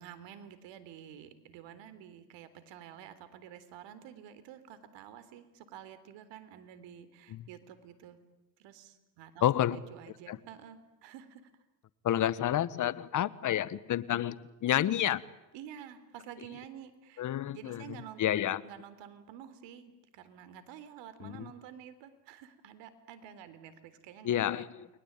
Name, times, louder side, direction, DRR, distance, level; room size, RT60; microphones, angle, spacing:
voice 1, 0.0-8.2 8.6-11.5 15.5-24.7, right 9 dB, 55° right, 3.9 m, -50 dB
voice 2, 9.4-9.8 10.3-10.4 12.0-15.2 17.2-18.6 21.2-21.5 24.2-24.9, left 11 dB, 35° left, 1.4 m, -30 dB
29.5 x 22.5 x 9.1 m
hypercardioid pair, 95°, 50 cm